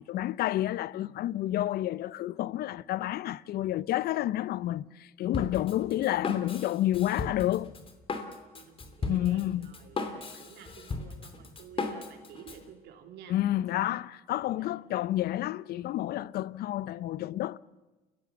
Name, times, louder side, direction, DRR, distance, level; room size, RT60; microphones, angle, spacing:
voice 1, 0.0-7.7 9.1-9.7 13.3-17.6, left 14 dB, 65° left, 0.6 m, -30 dB
Drum kit, 5.3-12.6, left 3 dB, 30° left, 2.9 m, -37 dB
voice 2, 8.5-13.3 13.7-13.9 14.3-14.7, right 8 dB, 80° right, 3.3 m, -51 dB
29.0 x 16.5 x 7.3 m
cardioid pair, 110°, 17 cm